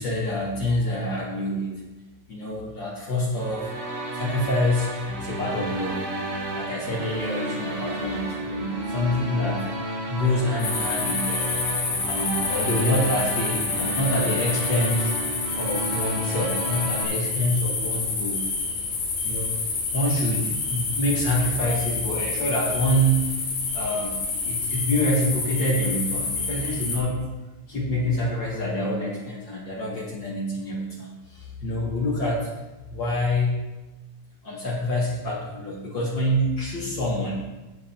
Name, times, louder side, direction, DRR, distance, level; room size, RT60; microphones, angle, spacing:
voice 1, 0.0-1.7 2.3-3.7 4.1-6.0 6.5-9.7 10.1-11.4 12.1-15.1 15.6-18.5 19.2-19.5 19.9-23.3 23.7-27.3 27.7-32.5 32.9-33.6 34.4-37.4, left 1 dB, 85° left, -5 dB, 1.0 m, -26 dB
sound 1, 3.4-17.0, right 1 dB, 80° right, 4.5 m, -31 dB
sound 2, 10.6-27.0, left 4 dB, 65° left, 4.3 m, -28 dB
12.5 x 8.0 x 4.5 m, 1.1 s
omnidirectional pair, 5.3 m